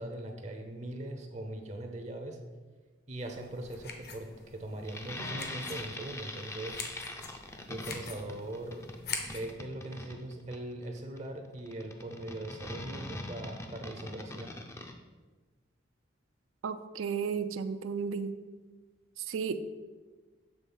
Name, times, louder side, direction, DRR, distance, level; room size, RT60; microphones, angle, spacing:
voice 1, 0.0-2.4 3.1-6.8 7.7-8.9 9.2-14.5, right 1 dB, 35° right, 5 dB, 0.5 m, -40 dB
sound 1, 3.2-9.5, left 5 dB, 50° left, 0.8 m, -44 dB
sound 2, 4.8-14.9, left 1 dB, 15° left, 0.4 m, -42 dB
voice 2, 16.6-18.3 19.3-19.6, right 6 dB, 90° right, 11 dB, 0.4 m, -33 dB
7.1 x 3.6 x 5.4 m, 1.3 s
head